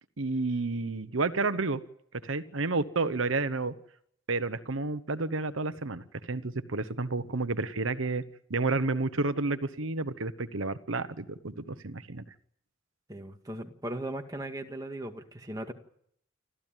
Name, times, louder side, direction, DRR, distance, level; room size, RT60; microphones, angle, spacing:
voice 1, 0.2-1.8 2.2-3.7 4.3-8.2 8.5-12.2, right 3 dB, 85° right, 12 dB, 1.1 m, -30 dB
voice 2, 13.1-15.7, right 1 dB, 20° right, 4 dB, 2.0 m, -38 dB
28.0 x 14.0 x 9.1 m, 0.70 s
head